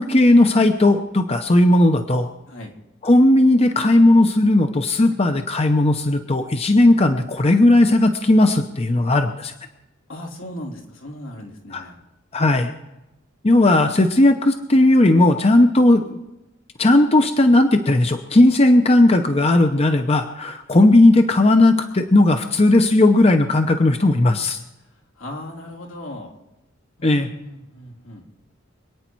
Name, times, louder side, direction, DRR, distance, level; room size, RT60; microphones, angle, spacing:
voice 1, 0.0-2.3 3.0-9.5 11.7-11.8 12.3-12.7 13.4-16.2 16.8-24.6 27.0-27.3, left 1 dB, 30° left, 6 dB, 0.8 m, -16 dB
voice 2, 10.1-12.0 25.1-26.3 27.0-28.3, left 1 dB, 80° left, 0 dB, 3.2 m, -37 dB
25.5 x 9.5 x 4.6 m, 0.96 s
head